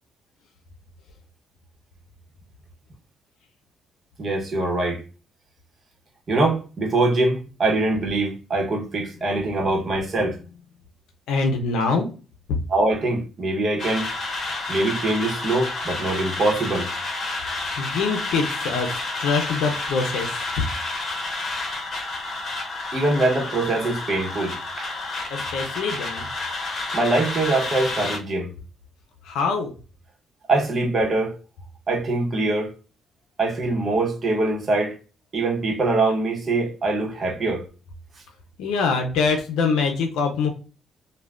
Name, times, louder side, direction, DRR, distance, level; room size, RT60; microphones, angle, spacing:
voice 1, 4.2-5.0 6.3-10.4 12.7-14.1 14.7-16.9 22.9-24.9 26.9-28.5 30.5-31.3 31.9-32.7 33.4-35.0 35.3-37.6, right 2 dB, 45° right, 0.9 m, -23 dB
voice 2, 11.3-12.1 17.8-20.5 25.3-26.3 29.2-29.7 38.6-40.5, left 4 dB, 90° left, 0.5 m, -24 dB
sound 1, 13.8-28.2, left 2 dB, 45° left, 1.0 m, -30 dB
3.2 x 2.2 x 2.3 m
cardioid pair, 90°, 0 cm